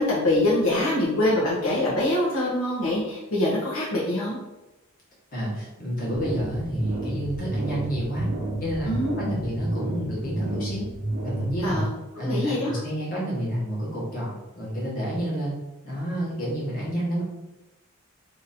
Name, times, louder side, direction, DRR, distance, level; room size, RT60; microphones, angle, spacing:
voice 1, 0.0-4.4 8.9-9.1 11.6-11.9 12.2-12.8, left 1 dB, 70° left, -6 dB, 0.9 m, -24 dB
voice 2, 5.3-8.3 8.6-10.9 11.2-11.8 12.2-15.5 15.8-17.2, equal, 40° left, -6 dB, 1.3 m, -29 dB
sound 1, 6.1-11.8, right 1 dB, 50° right, 0.8 m, -30 dB
2.9 x 2.6 x 4.1 m, 1.0 s
head